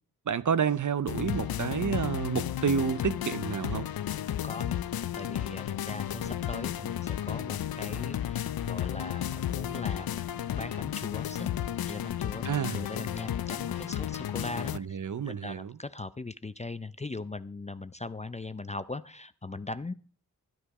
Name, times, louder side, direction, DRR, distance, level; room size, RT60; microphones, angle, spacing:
voice 1, 0.3-3.9 12.4-12.8 14.7-15.8, right 7 dB, 55° right, 0.7 m, -29 dB
sound 1, 1.1-14.8, left 11 dB, 75° left, 0.5 m, -33 dB
voice 2, 4.3-4.8 5.1-10.2 10.5-11.5 11.9-15.0 15.3-19.9, left 3 dB, 20° left, 0.5 m, -40 dB
Boat Water vehicle, 5.9-11.0, right 2 dB, 40° right, 1.8 m, -52 dB
12.0 x 9.8 x 4.9 m
cardioid pair, 65°, 37 cm